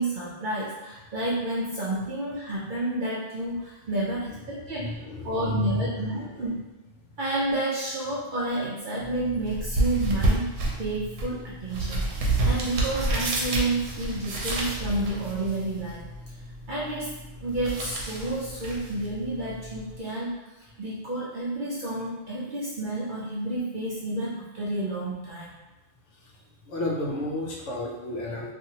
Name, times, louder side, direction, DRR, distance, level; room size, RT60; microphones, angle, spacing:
voice 1, 0.0-4.9 5.2-6.6 7.2-10.5 10.8-12.0 12.4-16.0 16.7-17.1 17.4-25.5, right 2 dB, 55° right, -7 dB, 0.6 m, -30 dB
voice 2, 4.8-6.3 12.3-12.4 26.1-26.4 26.7-28.5, left 1 dB, 70° left, -2 dB, 0.9 m, -32 dB
sound 1, 9.0-20.0, right 2 dB, 85° right, 1.0 m, -30 dB
2.8 x 2.6 x 2.7 m, 1.1 s
omnidirectional pair, 1.3 m